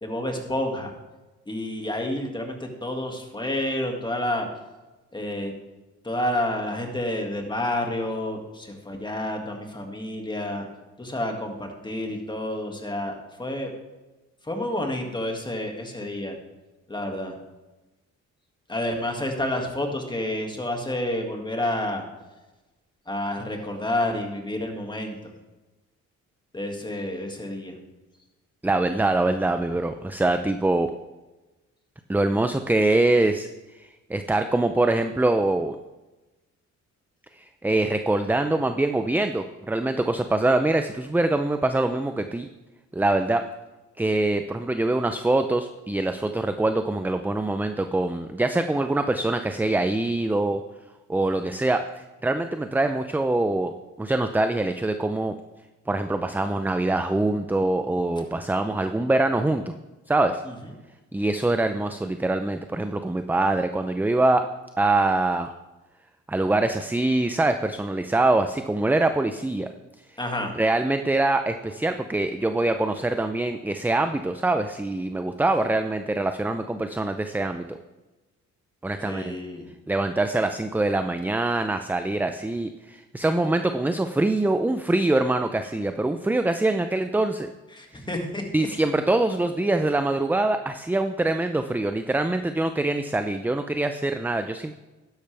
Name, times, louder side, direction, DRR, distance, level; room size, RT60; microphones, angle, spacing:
voice 1, 0.0-0.9 1.5-4.5 5.1-5.5 6.0-10.7 11.0-13.7 14.5-16.4 16.9-17.3 18.7-22.0 23.1-25.2 26.5-27.7 60.5-60.6 70.2-70.6 79.0-79.7 87.7-88.4, left 1 dB, 15° left, 3 dB, 2.1 m, -29 dB
voice 2, 28.6-30.9 32.1-35.8 37.3-42.5 42.9-43.4 44.0-50.6 51.1-53.7 54.0-55.3 55.9-59.7 60.1-60.4 61.1-64.5 64.8-65.5 66.3-69.7 70.6-77.8 78.8-79.4 79.9-87.5 87.9-88.0 88.5-94.7, right 2 dB, 5° right, 8 dB, 0.5 m, -24 dB
12.0 x 10.5 x 3.4 m, 1.1 s
cardioid pair, 90°, 30 cm